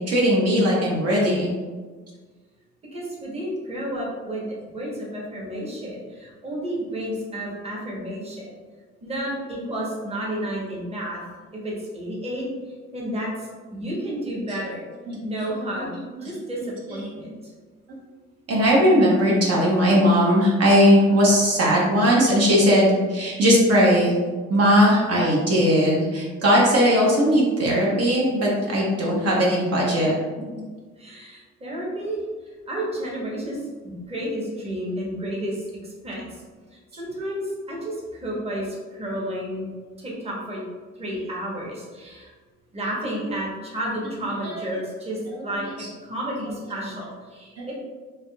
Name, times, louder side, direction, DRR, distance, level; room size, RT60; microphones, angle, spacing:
voice 1, 0.0-1.5 15.1-15.2 18.5-24.1 24.5-30.1 44.4-44.5 45.3-45.4, equal, 55° right, -4 dB, 0.8 m, -18 dB
voice 2, 2.9-4.4 4.7-8.5 9.0-11.2 11.6-12.5 12.9-14.8 15.2-15.9 16.2-17.3 31.0-32.2 32.7-33.6 33.8-35.6 36.0-36.2 37.0-39.7 40.0-40.6 41.0-42.3 42.7-47.8, right 1 dB, 20° right, -4 dB, 0.9 m, -31 dB
3.5 x 2.6 x 2.2 m, 1.4 s
cardioid pair, 90°, 30 cm